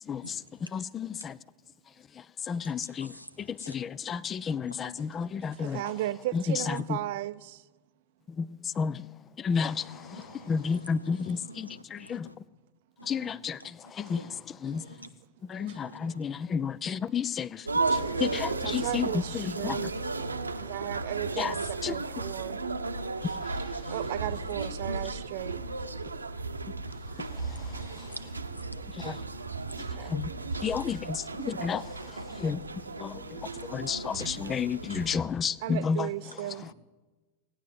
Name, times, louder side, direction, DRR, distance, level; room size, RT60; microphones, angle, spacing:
voice 1, 0.1-0.4 0.7-1.3 2.5-3.1 3.4-5.8 6.3-6.8 8.4-9.0 9.4-12.3 13.0-14.8 15.5-17.7 17.9-19.1 19.3-19.8 21.4-21.5 21.8-21.9 29.0-29.2 30.1-30.3 30.6-31.8 32.4-32.6 33.0-36.1, left 6 dB, 25° left, 0.4 m, -31 dB
voice 2, 5.5-7.6 15.7-15.8 18.6-20.0 20.6-22.6 23.9-25.6 30.0-30.2 35.6-36.7, right 15 dB, 50° right, 0.5 m, -35 dB
voice 3, 9.5-11.8 12.1-12.3 13.0-13.3 13.6-13.7 14.0-14.4 14.7-15.1 15.5-16.2 17.8-18.2 27.6-30.9 32.3-32.5 33.6-33.9 34.2-34.7, equal, 90° left, 1.0 m, -48 dB
sound 1, 17.7-35.2, right 3 dB, 80° right, 0.8 m, -34 dB
17.5 x 9.4 x 8.1 m
figure-of-eight pair, 90°, 0 cm